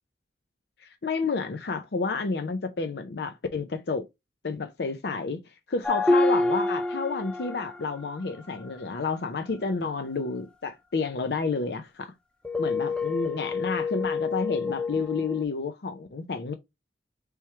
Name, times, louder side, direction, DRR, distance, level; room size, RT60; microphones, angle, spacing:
voice 1, 0.8-4.0 4.4-5.4 5.7-12.1 12.6-16.5, left 4 dB, 65° left, 0.5 m, -30 dB
sound 1, 5.8-8.0 12.4-15.4, left 2 dB, 5° left, 0.3 m, -27 dB
3.5 x 3.0 x 4.3 m
head